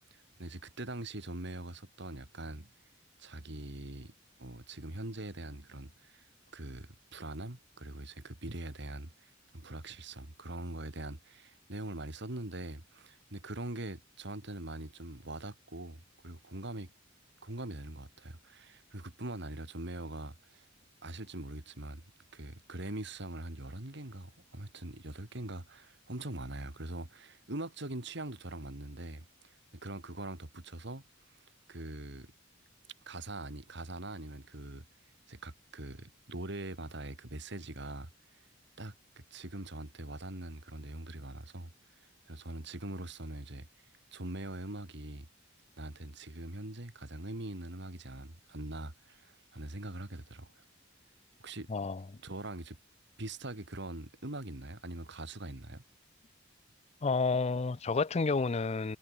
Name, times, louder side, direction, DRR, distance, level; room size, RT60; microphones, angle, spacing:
voice 1, 0.1-2.7 3.2-4.1 4.4-6.3 6.5-16.9 17.4-20.7 21.0-22.0 22.3-31.0 31.7-32.3 33.1-34.8 35.3-38.1 38.8-41.7 42.3-43.7 44.1-45.3 45.8-50.6 51.4-51.7 52.2-52.8 53.2-55.8, right 1 dB, 60° right, 2.6 m, -42 dB
voice 2, 51.7-52.0 57.0-59.0, left 4 dB, 35° left, 0.5 m, -30 dB
head